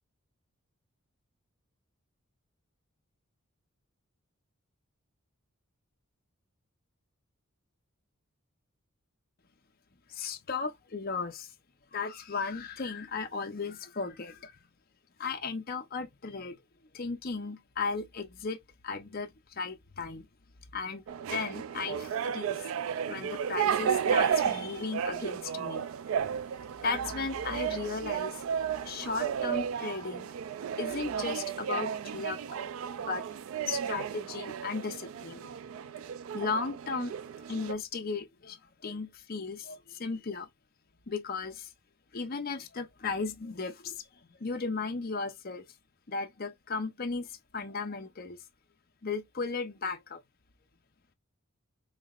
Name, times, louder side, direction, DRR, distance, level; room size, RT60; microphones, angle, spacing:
voice 1, 10.1-11.5 11.9-14.5 15.2-16.6 16.9-18.6 18.8-20.3 20.7-22.6 23.1-25.9 26.8-28.4 28.7-30.3 30.8-32.6 33.1-33.2 33.7-35.5 36.3-37.1 37.4-38.6 38.8-40.5 41.1-41.7 42.1-45.6 46.1-48.4 49.0-50.2, left 4 dB, 45° left, 0.7 m, -36 dB
sound 1, 21.1-37.7, right 8 dB, 70° right, 0.3 m, -33 dB
4.0 x 3.2 x 2.4 m
head